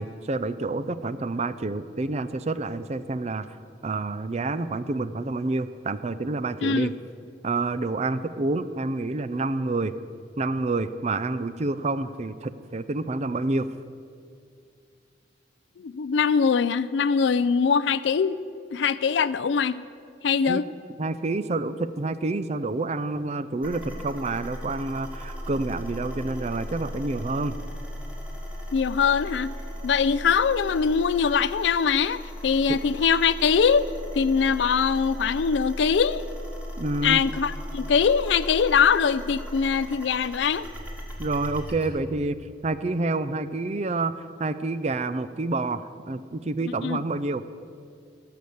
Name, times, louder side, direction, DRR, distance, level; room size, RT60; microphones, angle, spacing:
voice 1, 0.0-3.5 3.8-6.9 7.4-10.0 10.4-13.7 20.5-20.6 21.0-27.6 36.8-37.2 41.2-42.4 42.6-47.4, right 2 dB, 35° right, 13 dB, 0.5 m, -28 dB
voice 2, 6.6-6.9 15.8-18.4 18.7-19.8 20.2-20.7 28.7-29.5 29.8-33.9 34.1-36.2 37.0-40.7 46.6-47.0, left 6 dB, 75° left, 16 dB, 0.4 m, -22 dB
sound 1, 23.6-41.9, equal, 10° right, 2.0 m, -37 dB
17.5 x 6.8 x 7.9 m, 2.4 s
head